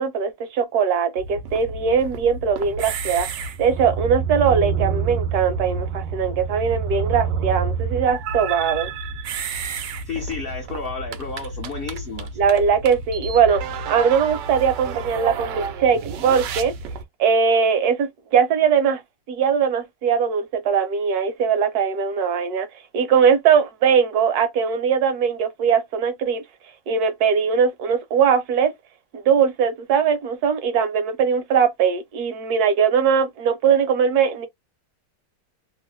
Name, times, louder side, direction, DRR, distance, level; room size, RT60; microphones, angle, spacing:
voice 1, 0.0-8.9 12.4-13.6 13.9-16.7 17.2-19.0 19.3-22.7 22.9-26.4 26.9-28.7 29.1-34.5, right 7 dB, 70° right, 1.1 m, -20 dB
sound 1, 1.2-17.0, right 6 dB, 85° right, 1.2 m, -29 dB
voice 2, 10.0-12.3, left 4 dB, 60° left, 0.6 m, -31 dB
3.0 x 2.0 x 3.0 m
omnidirectional pair, 1.9 m